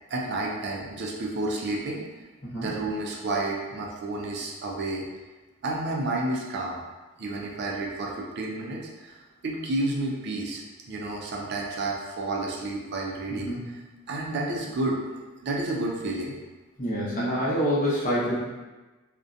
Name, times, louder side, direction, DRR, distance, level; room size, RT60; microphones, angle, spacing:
voice 1, 0.1-2.0 2.6-5.1 5.6-6.8 7.2-13.7 14.1-15.0 15.4-16.3, right 2 dB, 50° right, -1 dB, 0.3 m, -30 dB
voice 2, 13.3-13.6 16.8-18.4, equal, 35° left, -9 dB, 0.8 m, -26 dB
2.6 x 2.1 x 2.5 m, 1.2 s
head